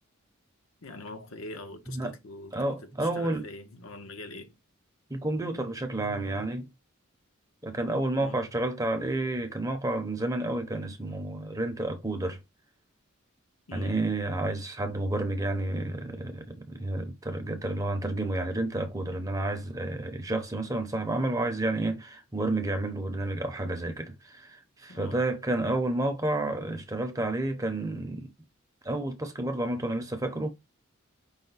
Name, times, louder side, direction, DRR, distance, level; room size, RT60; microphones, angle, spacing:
voice 1, 0.8-2.5 2.8-4.5 8.2-8.4 13.7-14.0 24.9-25.2, left 2 dB, 75° left, 0.9 m, -43 dB
voice 2, 2.5-3.5 5.1-6.7 7.6-12.4 13.7-28.3 28.8-30.5, right 2 dB, 15° right, 0.7 m, -30 dB
5.5 x 2.2 x 3.9 m
head